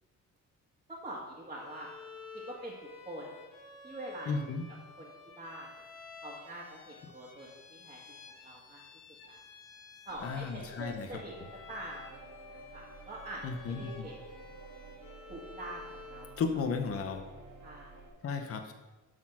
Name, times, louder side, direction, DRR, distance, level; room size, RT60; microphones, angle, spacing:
voice 1, 0.9-1.9 2.3-3.4 3.8-4.5 5.0-5.8 6.2-8.8 9.2-9.4 10.1-11.3 11.7-14.5 15.3-16.3 16.9-17.1 17.6-18.0, right 1 dB, 20° right, -5 dB, 1.7 m, -45 dB
Bowed string instrument, 1.6-16.4, left 4 dB, 90° left, 2.0 m, -52 dB
voice 2, 4.3-4.6 10.2-11.1 13.4-14.1 16.4-17.2 18.2-18.7, left 5 dB, 45° left, 5 dB, 0.9 m, -34 dB
sound 1, 10.1-18.1, right 4 dB, 70° right, 1.8 m, -52 dB
12.0 x 4.2 x 6.0 m, 1.2 s
cardioid pair, 130°, 33 cm